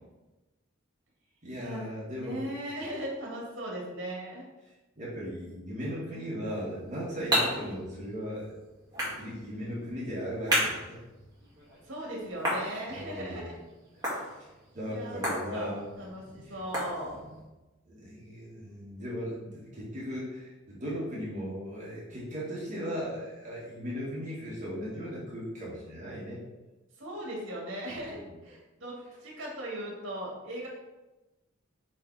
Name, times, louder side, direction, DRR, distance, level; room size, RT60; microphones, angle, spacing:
voice 1, 1.4-2.4 5.0-8.5 9.0-11.0 12.9-13.5 14.1-14.3 14.7-15.8 17.9-26.4, equal, 35° right, -8 dB, 1.9 m, -37 dB
voice 2, 2.2-4.4 7.4-7.8 11.8-13.5 14.2-14.5 14.9-15.7 16.0-17.2 27.0-30.7, right 1 dB, 65° right, -3 dB, 2.2 m, -38 dB
sound 1, 6.6-17.5, equal, 20° right, 2.1 m, -35 dB
7.4 x 3.5 x 4.3 m, 1.1 s
head